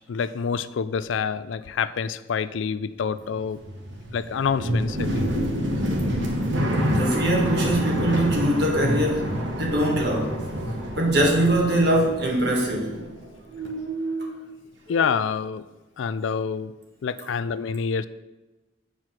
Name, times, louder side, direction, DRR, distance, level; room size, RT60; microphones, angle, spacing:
voice 1, 0.1-3.6 4.1-5.3 5.8-5.9 14.9-15.6 16.0-16.7 17.0-18.1, left 6 dB, 85° left, 15 dB, 0.4 m, -27 dB
sound 1, 3.2-13.3 13.5-14.4, equal, 75° right, 1.3 m, -27 dB
voice 2, 6.9-9.3 9.6-10.4 11.0-13.1, right 1 dB, 60° right, -1 dB, 1.7 m, -22 dB
7.7 x 4.9 x 5.8 m, 1.1 s
head